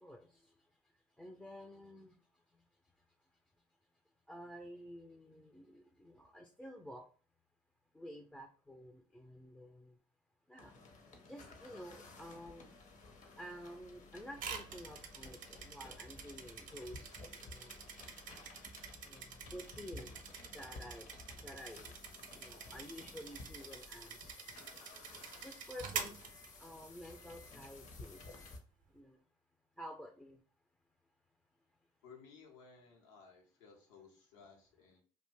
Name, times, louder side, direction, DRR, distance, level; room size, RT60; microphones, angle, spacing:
voice 1, 0.0-0.5 1.2-2.1 4.3-7.1 7.9-9.9 10.5-10.7 11.3-12.7 13.4-17.1 17.4-17.8 19.0-20.1 20.5-21.1 21.4-21.9 22.3-24.3 25.4-26.1 26.6-28.2 28.9-29.2 29.8-30.4, equal, 5° left, 3 dB, 0.4 m, -51 dB
sound 1, 10.6-28.6, left 3 dB, 50° left, 0.7 m, -54 dB
sound 2, 14.4-27.0, right 6 dB, 55° right, 0.6 m, -47 dB
voice 2, 32.0-35.0, left 5 dB, 85° left, 0 dB, 0.8 m, -59 dB
2.5 x 2.1 x 3.3 m, 0.41 s
hypercardioid pair, 65°, 16 cm